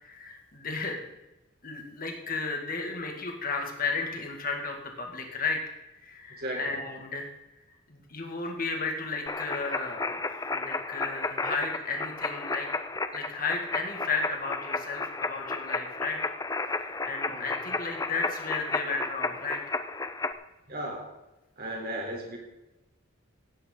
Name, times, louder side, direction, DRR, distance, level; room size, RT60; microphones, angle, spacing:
voice 1, 0.0-1.1 1.6-5.6 6.0-7.3 7.9-12.7 13.1-16.2 16.6-19.6, left 4 dB, 40° left, 2 dB, 2.3 m, -34 dB
voice 2, 6.4-6.7 17.3-17.4 20.7-21.1 21.6-22.4, right 1 dB, 45° right, 0 dB, 3.9 m, -35 dB
sound 1, 9.3-20.3, left 3 dB, 15° left, 0.5 m, -33 dB
16.5 x 10.0 x 4.0 m, 0.99 s
head